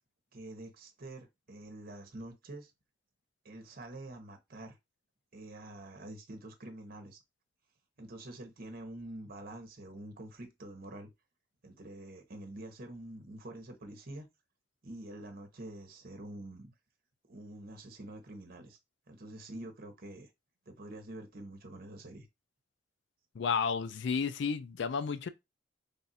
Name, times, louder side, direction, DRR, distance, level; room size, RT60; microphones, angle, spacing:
voice 1, 0.3-2.7 3.4-4.8 5.3-7.2 8.0-11.1 11.6-14.3 14.8-16.7 17.3-18.8 19.1-20.3 20.7-22.3, right 1 dB, 50° right, 1.0 m, -46 dB
voice 2, 23.4-25.3, left 5 dB, 65° left, 0.4 m, -32 dB
3.4 x 2.5 x 4.1 m
head